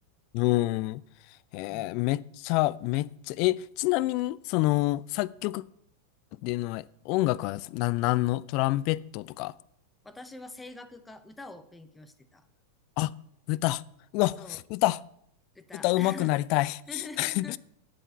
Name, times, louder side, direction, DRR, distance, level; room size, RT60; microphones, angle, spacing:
voice 1, 0.3-1.0 1.5-5.6 6.4-9.5 13.0-13.1 13.5-13.8 14.1-15.0 15.8-16.8 17.2-17.6, left 19 dB, 45° left, 0.4 m, -27 dB
voice 2, 10.0-12.5 14.4-14.6 15.5-16.3 16.9-17.6, left 2 dB, 10° left, 0.9 m, -45 dB
7.7 x 7.7 x 8.3 m
figure-of-eight pair, 90°, 0 cm